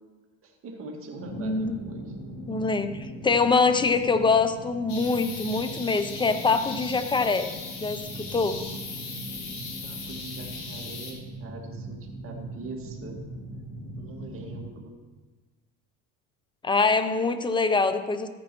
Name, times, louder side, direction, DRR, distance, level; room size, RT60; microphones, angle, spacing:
voice 1, 0.4-2.2 9.8-13.2 14.0-14.9, right 2 dB, 40° right, 1 dB, 2.0 m, -43 dB
sound 1, 1.2-14.7, right 1 dB, 45° left, 2.4 m, -40 dB
voice 2, 1.4-1.8 2.5-7.5 7.8-8.6 16.6-18.3, left 4 dB, 15° left, 10 dB, 0.6 m, -24 dB
sound 2, 4.9-11.1, left 4 dB, 70° left, 2.9 m, -39 dB
13.5 x 9.6 x 3.0 m, 1.3 s
supercardioid pair, 115°, 33 cm